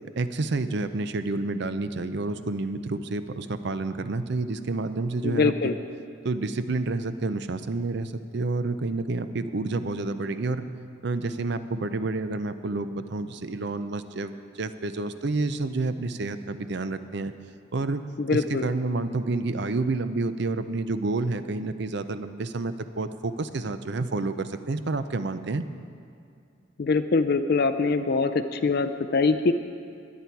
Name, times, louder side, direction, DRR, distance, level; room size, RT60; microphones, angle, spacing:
voice 1, 0.2-5.7 6.2-10.7 11.0-17.3 17.7-18.0 18.3-25.7, right 3 dB, 60° right, 11 dB, 0.6 m, -29 dB
voice 2, 5.2-5.7 18.2-18.6 26.8-29.5, left 4 dB, 50° left, 9 dB, 0.4 m, -23 dB
21.0 x 8.5 x 4.6 m, 2.4 s
head